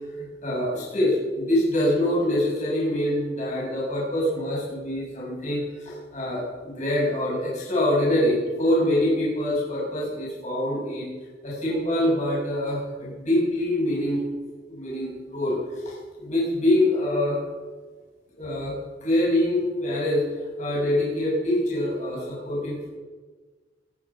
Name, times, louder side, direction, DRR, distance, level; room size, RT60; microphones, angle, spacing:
voice 1, 0.1-11.1 11.4-14.2 14.7-15.6 15.8-17.4 18.4-20.3 20.6-22.9, left 1 dB, 40° left, -6 dB, 6.9 m, -25 dB
23.5 x 9.8 x 5.9 m, 1.4 s
head